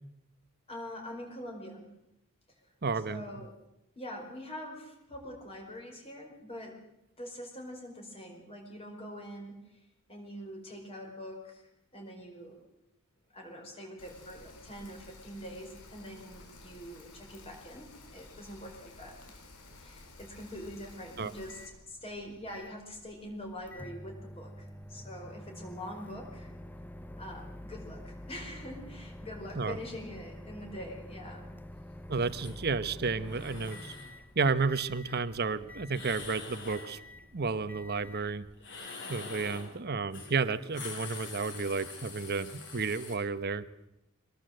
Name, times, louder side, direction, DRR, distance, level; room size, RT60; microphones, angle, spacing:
voice 1, 0.7-1.9 2.6-3.5 3.9-6.8 7.2-12.6 13.3-19.4 19.8-26.5 27.2-31.5, equal, 25° left, 0 dB, 4.9 m, -44 dB
voice 2, 2.8-3.2 21.2-21.3 29.6-29.8 32.1-33.9 34.4-37.0 37.3-38.5 39.1-43.6, right 4 dB, 45° right, 13 dB, 1.0 m, -32 dB
Rain, 14.0-21.7, left 2 dB, 90° left, 4.7 m, -53 dB
Microwave oven, 21.4-38.9, left 1 dB, 10° left, 0.7 m, -48 dB
sound 1, 32.2-32.6 33.2-34.1 35.9-36.9 38.6-39.7 40.1-40.3 40.6-43.1, left 4 dB, 55° left, 6.2 m, -45 dB
23.5 x 19.0 x 7.8 m, 0.86 s
head